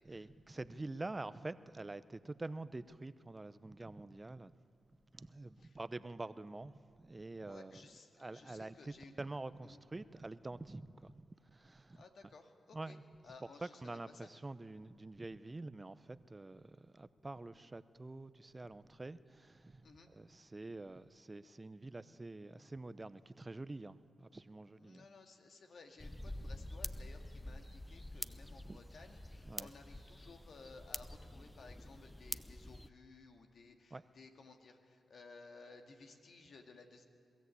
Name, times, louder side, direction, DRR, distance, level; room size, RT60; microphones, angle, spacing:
voice 1, 0.1-4.5 5.1-7.8 8.2-12.0 12.7-13.0 13.6-25.1 28.6-28.8 29.5-29.7 33.9-34.0, right 2 dB, 30° right, 15 dB, 0.7 m, -47 dB
voice 2, 7.5-9.1 9.6-9.8 12.0-13.0 13.2-14.3 19.8-20.1 24.7-37.0, left 3 dB, 65° left, 4 dB, 2.0 m, -58 dB
sound 1, 26.0-32.9, left 1 dB, 10° left, 0.7 m, -47 dB
22.5 x 14.0 x 8.4 m, 2.4 s
supercardioid pair, 45°, 0 cm